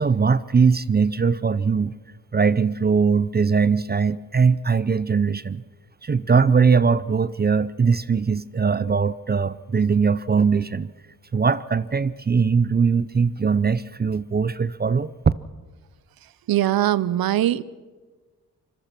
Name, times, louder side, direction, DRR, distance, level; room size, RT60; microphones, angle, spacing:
voice 1, 0.0-1.9 2.3-5.6 6.0-10.9 11.3-15.1, right 5 dB, 30° right, 18 dB, 0.6 m, -20 dB
voice 2, 16.5-17.6, right 13 dB, 85° right, 19 dB, 0.7 m, -21 dB
25.5 x 20.5 x 5.9 m, 1.4 s
cardioid pair, 70°, 34 cm